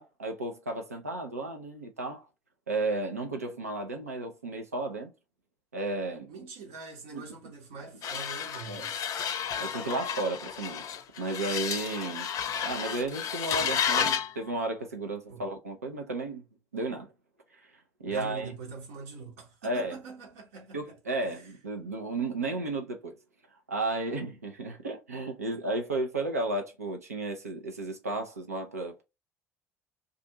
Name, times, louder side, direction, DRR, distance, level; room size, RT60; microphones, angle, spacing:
voice 1, 0.0-2.2 2.7-5.1 5.7-6.3 7.1-7.2 8.7-8.9 9.6-10.8 11.2-12.3 12.6-16.4 16.7-17.1 18.0-18.5 19.6-20.0 20.7-23.1 23.7-29.0, right 2 dB, 85° right, 0.6 m, -33 dB
voice 2, 6.3-8.9 15.3-15.5 18.0-21.5, right 4 dB, 70° right, 1.0 m, -44 dB
sound 1, 8.0-14.3, left 8 dB, 45° left, 0.5 m, -32 dB
2.5 x 2.4 x 2.7 m
figure-of-eight pair, 55°, 8 cm